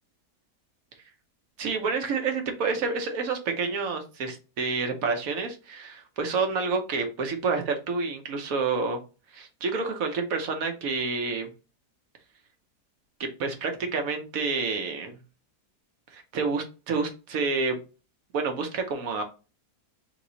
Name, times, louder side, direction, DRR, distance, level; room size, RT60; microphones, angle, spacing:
voice 1, 1.6-9.0 9.3-11.5 13.2-15.1 16.1-17.8 18.3-19.2, right 4 dB, 65° right, 5 dB, 1.1 m, -29 dB
3.5 x 3.0 x 3.8 m, 0.33 s
omnidirectional pair, 1.7 m